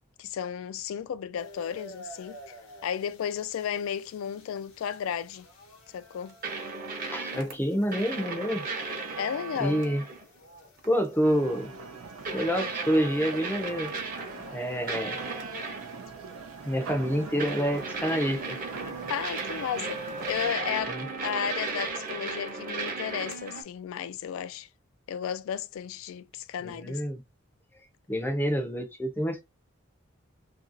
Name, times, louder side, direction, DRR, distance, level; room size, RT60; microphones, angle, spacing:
voice 1, 0.2-2.6 2.8-5.5 5.9-6.3 9.2-9.8 19.1-24.7 25.1-27.0, left 8 dB, 75° left, 0.3 m, -33 dB
sound 1, 1.4-20.5, left 1 dB, 90° left, 0.9 m, -51 dB
sound 2, 6.4-7.5 7.9-10.2 10.8-11.0 12.2-14.6 14.9-16.0 17.4-23.6, right 4 dB, 45° right, 0.8 m, -35 dB
voice 2, 7.1-8.6 9.6-10.0 10.8-11.7 12.3-13.9 14.5-15.1 16.6-18.6 20.9-21.1 26.6-27.2 28.1-29.4, equal, 10° left, 0.5 m, -27 dB
sound 3, 11.2-20.9, right 5 dB, 90° right, 0.5 m, -43 dB
2.8 x 2.6 x 2.5 m
head